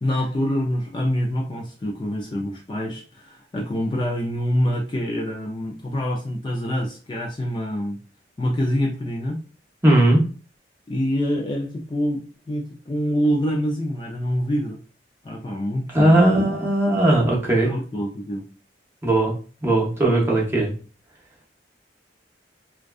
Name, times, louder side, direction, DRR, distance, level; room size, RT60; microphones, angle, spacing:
voice 1, 0.0-8.0 8.4-9.4 10.9-14.8 15.2-16.3 17.6-18.5, equal, 25° left, -1 dB, 0.3 m, -26 dB
voice 2, 9.8-10.2 15.9-17.7 19.0-19.3 19.6-20.7, right 1 dB, 15° right, -3 dB, 0.7 m, -18 dB
2.6 x 2.2 x 2.3 m, 0.38 s
head